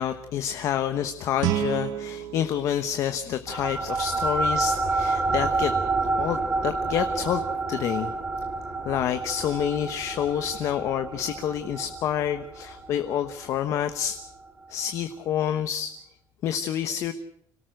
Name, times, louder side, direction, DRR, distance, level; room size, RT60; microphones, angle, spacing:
voice 1, 0.0-5.7 6.1-8.1 8.8-14.2 14.7-15.9 16.4-17.1, left 10 dB, 45° left, 8 dB, 1.1 m, -28 dB
Guitar, 1.4-4.2, right 13 dB, 60° right, 1.1 m, -32 dB
sound 1, 3.5-14.3, right 3 dB, 15° right, 1.3 m, -29 dB
26.0 x 18.0 x 6.5 m, 0.73 s
cardioid pair, 180°, 7 cm